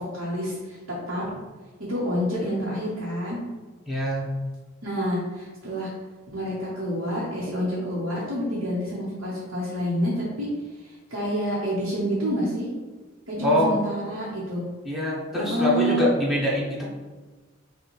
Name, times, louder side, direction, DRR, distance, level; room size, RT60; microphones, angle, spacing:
voice 1, 0.1-0.8 1.1-1.2 1.9-3.4 4.8-5.9 6.3-10.5 11.1-12.7 13.3-14.6 15.5-16.0, equal, 85° right, -7 dB, 1.0 m, -28 dB
voice 2, 3.9-4.3 13.4-13.7 14.8-16.9, left 1 dB, ahead, -6 dB, 0.7 m, -24 dB
5.4 x 2.3 x 3.1 m, 1.3 s
head